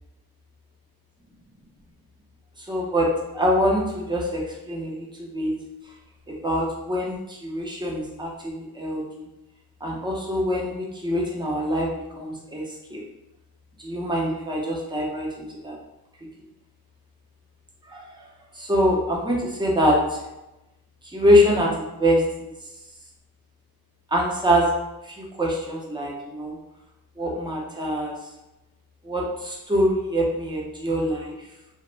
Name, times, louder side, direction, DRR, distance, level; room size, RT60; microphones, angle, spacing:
voice 1, 2.6-5.5 6.3-9.3 9.8-11.9 12.2-12.6 12.9-13.0 13.8-15.8 17.9-18.0 18.6-20.2 21.0-22.5 24.1-24.7 25.0-26.6 27.2-28.1 29.0-31.4, equal, 10° right, -3 dB, 0.6 m, -24 dB
2.9 x 2.1 x 3.2 m, 0.96 s
wide cardioid pair, 125°, 38 cm